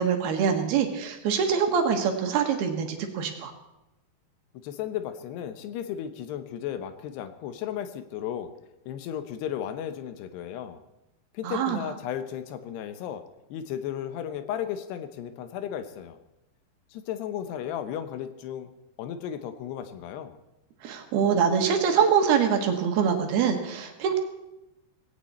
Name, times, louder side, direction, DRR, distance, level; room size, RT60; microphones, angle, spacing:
voice 1, 0.0-3.5 11.4-11.8 20.8-24.2, right 7 dB, 70° right, 5 dB, 3.4 m, -24 dB
voice 2, 4.6-8.5 8.9-10.8 11.3-13.2 13.5-16.2 16.9-18.7 19.0-20.3, left 10 dB, 80° left, 10 dB, 3.1 m, -34 dB
18.0 x 16.5 x 4.3 m, 0.93 s
omnidirectional pair, 4.8 m